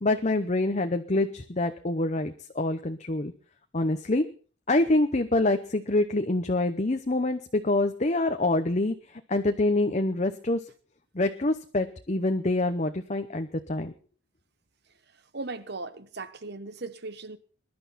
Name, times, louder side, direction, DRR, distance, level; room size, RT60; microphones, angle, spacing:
voice 1, 0.0-3.3 3.7-4.2 4.7-10.6 11.1-13.9, left 2 dB, 35° left, 0.8 m, -26 dB
voice 2, 15.1-17.4, right 3 dB, 55° right, 1.2 m, -38 dB
21.5 x 11.5 x 4.1 m
head